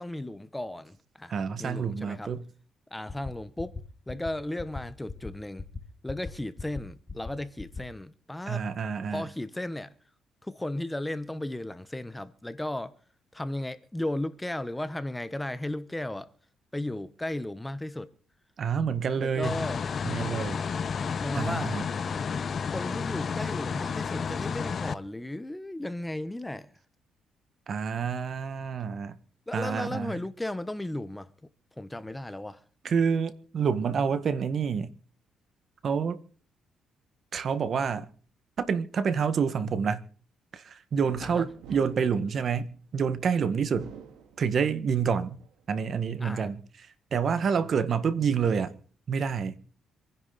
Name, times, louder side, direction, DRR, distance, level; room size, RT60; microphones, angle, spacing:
voice 1, 0.0-2.3 2.9-3.8 4.1-5.6 6.0-8.7 9.1-9.9 10.4-12.9 13.3-16.3 16.7-18.1 19.2-19.8 21.2-21.7 22.7-26.7 29.5-31.3 31.8-32.6 41.2-41.5 46.2-46.5, left 1 dB, 10° left, 1.0 m, -35 dB
voice 2, 1.3-2.4 8.5-9.2 18.6-19.6 20.0-20.6 21.4-21.8 27.7-29.2 29.5-30.1 32.8-34.9 35.8-36.2 37.3-38.1 38.6-40.0 40.5-43.9 44.4-45.4 45.7-46.6 47.1-48.7 49.1-49.6, right 6 dB, 55° right, 1.7 m, -28 dB
sound 1, 3.1-3.3 3.6-3.8 4.1-4.3 4.6-4.8 5.1-5.3 5.6-5.8 6.1-6.3 6.6-6.8 7.1-7.3 7.6-7.8, left 4 dB, 30° left, 1.7 m, -37 dB
sound 2, 19.4-24.9, left 6 dB, 45° left, 0.9 m, -31 dB
sound 3, 41.1-43.1 43.6-44.9 45.4-46.3, right 6 dB, 85° right, 2.9 m, -48 dB
26.5 x 10.5 x 4.2 m
cardioid pair, 90°, 0 cm